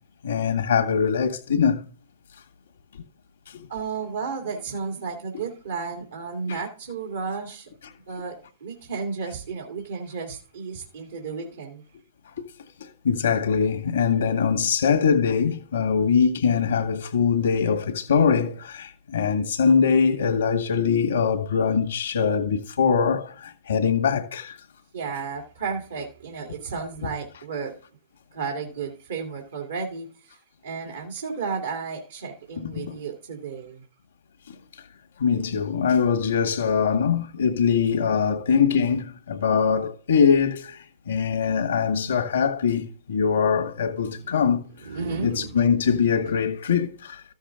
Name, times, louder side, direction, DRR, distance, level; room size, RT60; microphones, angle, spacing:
voice 1, 0.2-1.8 3.5-3.7 6.5-6.6 12.8-24.6 32.8-33.0 34.5-34.6 35.2-44.6 45.2-47.2, left 6 dB, 85° left, 1.5 m, -22 dB
voice 2, 3.7-7.7 8.1-11.8 24.9-27.8 28.3-33.8 44.1-44.3 44.9-45.5 45.8-46.3, right 5 dB, 80° right, 2.3 m, -33 dB
13.5 x 7.2 x 3.7 m
hypercardioid pair, 115°, 0 cm